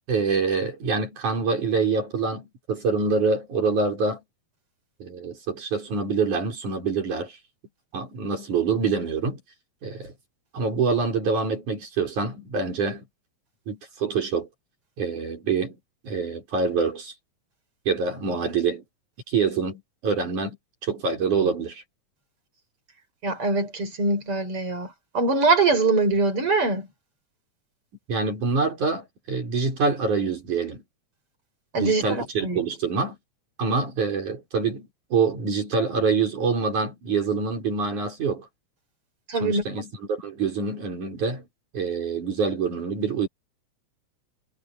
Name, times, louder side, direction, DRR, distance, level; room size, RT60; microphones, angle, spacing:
voice 1, 0.1-4.2 5.0-7.4 7.9-9.4 9.8-10.1 10.5-13.1 13.7-14.5 15.0-15.8 16.0-17.1 17.9-18.8 19.3-20.6 20.8-21.8 28.1-30.8 31.8-33.2 33.6-38.5 39.4-41.4 41.7-43.3, right 4 dB, 90° right, 7.1 m, -26 dB
voice 2, 23.2-24.9 25.1-26.9 31.7-32.6 39.3-39.6, right 3 dB, 45° right, 6.0 m, -23 dB
omnidirectional pair, 3.4 m